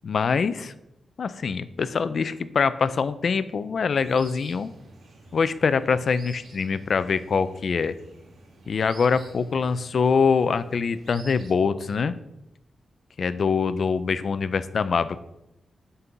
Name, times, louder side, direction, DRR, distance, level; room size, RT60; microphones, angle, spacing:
voice 1, 0.0-0.7 1.2-4.7 5.3-7.9 8.7-12.1 13.2-15.2, left 5 dB, 60° left, 13 dB, 0.5 m, -24 dB
sound 1, 3.9-11.5, right 2 dB, 80° right, 1.6 m, -49 dB
6.0 x 5.5 x 6.8 m, 0.86 s
wide cardioid pair, 115°, 0 cm